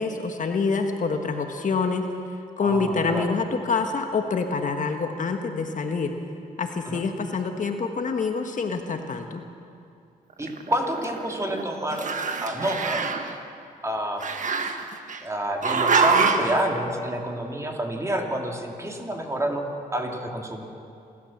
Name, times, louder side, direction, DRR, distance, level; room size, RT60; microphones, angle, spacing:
voice 1, 0.0-2.0 2.6-6.1 6.6-9.4, left 4 dB, 55° left, 5 dB, 1.5 m, -26 dB
voice 2, 2.6-3.3 6.9-7.0 10.4-12.1 12.4-13.1 13.8-14.3 15.2-19.7 19.9-20.6, right 1 dB, 20° right, 1 dB, 2.9 m, -28 dB
Growling, 10.4-11.6 11.9-13.3 14.2-15.2 15.6-16.6, right 5 dB, 55° right, 1.4 m, -25 dB
27.5 x 13.0 x 7.4 m, 2.5 s
cardioid pair, 90°, 16 cm